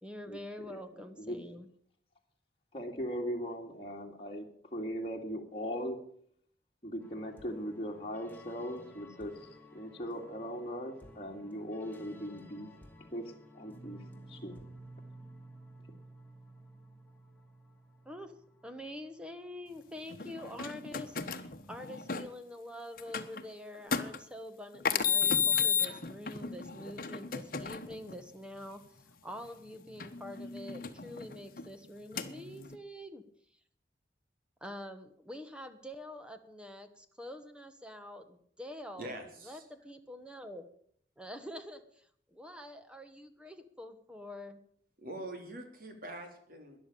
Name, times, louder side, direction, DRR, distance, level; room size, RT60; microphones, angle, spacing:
voice 1, 0.0-1.7 18.0-18.3 18.6-33.2 34.6-40.7 41.2-44.6, left 1 dB, 5° right, 8 dB, 1.2 m, -46 dB
voice 2, 2.7-6.0 6.8-12.7 13.1-13.2 13.5-14.0 14.3-14.6, equal, 30° left, -1 dB, 2.2 m, -39 dB
sound 1, 7.0-19.6, right 1 dB, 10° left, 2.2 m, -54 dB
sound 2, 20.1-22.3 23.0-23.4 23.9-24.2 24.8-28.1 30.0-31.6 32.1-32.7, left 7 dB, 55° left, 1.2 m, -32 dB
voice 3, 39.0-39.6 45.0-46.8, right 1 dB, 55° right, 5 dB, 3.3 m, -44 dB
13.0 x 11.0 x 8.4 m, 0.64 s
head